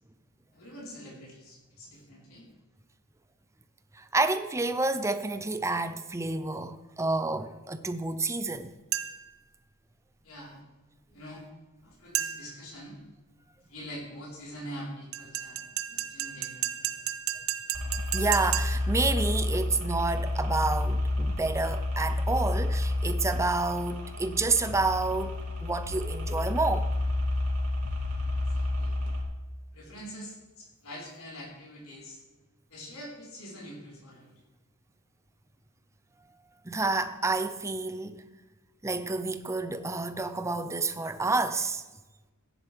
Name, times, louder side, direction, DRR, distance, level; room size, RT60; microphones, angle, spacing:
voice 1, 0.5-2.4 10.2-10.6 11.1-11.5 11.8-13.0 13.7-17.1 28.3-28.9 29.7-32.2 32.7-34.3, equal, 70° left, 4.2 m, -45 dB
voice 2, 3.9-8.7 18.1-26.9 36.6-38.3 38.8-41.8, right 3 dB, 15° right, 0.5 m, -29 dB
sound 1, 8.9-9.4 12.1-12.7 15.1-19.0, right 12 dB, 65° right, 0.8 m, -33 dB
sound 2, 17.7-29.2, left 2 dB, 80° right, 2.7 m, -30 dB
15.5 x 10.0 x 3.4 m
head